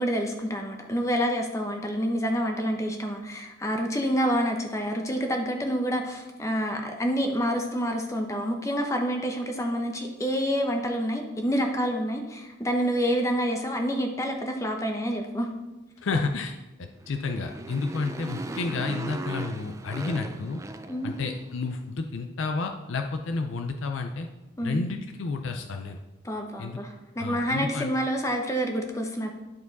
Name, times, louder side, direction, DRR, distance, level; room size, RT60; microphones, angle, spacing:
voice 1, 0.0-15.5 20.9-21.1 24.6-24.8 26.2-29.3, equal, 15° left, 3 dB, 0.8 m, -28 dB
voice 2, 16.0-20.6 21.0-24.3 24.6-26.0 26.6-26.8 27.2-27.9, left 3 dB, 75° left, 5 dB, 0.5 m, -31 dB
Motorcycle, 17.0-21.6, right 2 dB, 15° right, 0.3 m, -38 dB
11.0 x 4.7 x 4.0 m, 1.1 s
head